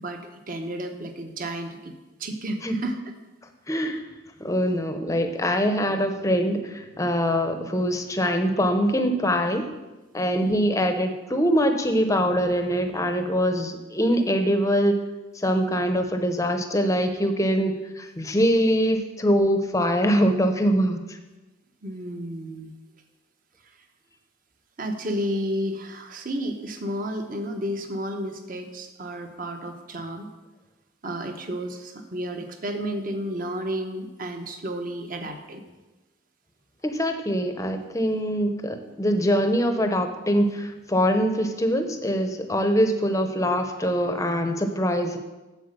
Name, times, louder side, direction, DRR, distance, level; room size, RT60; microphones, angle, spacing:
voice 1, 0.0-3.0 10.4-10.6 21.8-22.7 23.6-23.7 24.8-30.3 31.0-35.6, equal, 45° right, 5 dB, 1.1 m, -32 dB
voice 2, 3.7-4.0 4.4-9.7 10.1-14.9 15.3-21.0 36.8-45.2, equal, 15° left, 7 dB, 0.7 m, -23 dB
8.0 x 7.5 x 6.7 m, 1.1 s
head